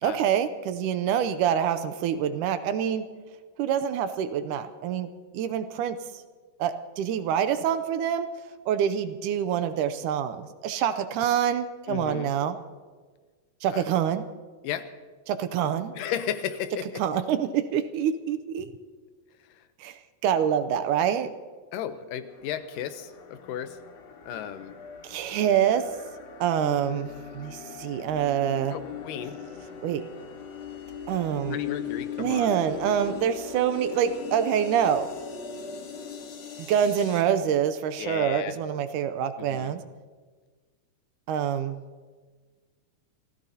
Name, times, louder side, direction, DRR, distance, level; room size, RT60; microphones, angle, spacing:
voice 1, 0.0-3.1 3.6-6.0 6.6-8.3 8.7-12.6 13.6-14.2 15.3-15.9 17.0-18.7 19.8-21.3 25.0-25.9 26.4-28.8 29.8-30.0 31.1-31.6 32.2-35.1 36.6-39.8 41.3-41.8, right 9 dB, 80° right, 10 dB, 2.1 m, -26 dB
voice 2, 11.9-12.3 13.7-13.9 14.6-14.9 15.9-17.0 19.5-19.6 21.7-23.8 24.3-24.8 28.7-29.4 31.5-32.5 38.0-38.5 39.4-39.8, left 9 dB, 80° left, 10 dB, 2.4 m, -34 dB
sound 1, 22.3-37.2, left 7 dB, 55° left, 2.4 m, -40 dB
27.5 x 15.5 x 2.8 m, 1.5 s
omnidirectional pair, 3.8 m